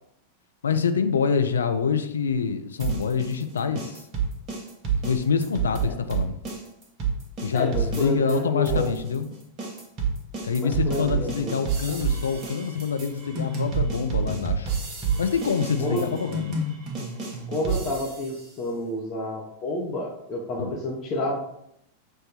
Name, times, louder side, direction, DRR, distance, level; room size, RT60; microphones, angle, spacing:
voice 1, 0.6-4.0 5.0-6.4 7.4-9.3 10.4-14.7 15.2-16.6 20.6-20.8, left 6 dB, 70° left, 8 dB, 0.3 m, -26 dB
sound 1, 2.8-8.4 8.7-18.4, right 5 dB, 35° right, 0.8 m, -29 dB
voice 2, 7.5-8.9 10.6-11.5 15.8-16.1 17.5-21.4, left 1 dB, 30° left, -2 dB, 0.7 m, -29 dB
6.2 x 2.1 x 2.8 m, 0.76 s
figure-of-eight pair, 90°, 0 cm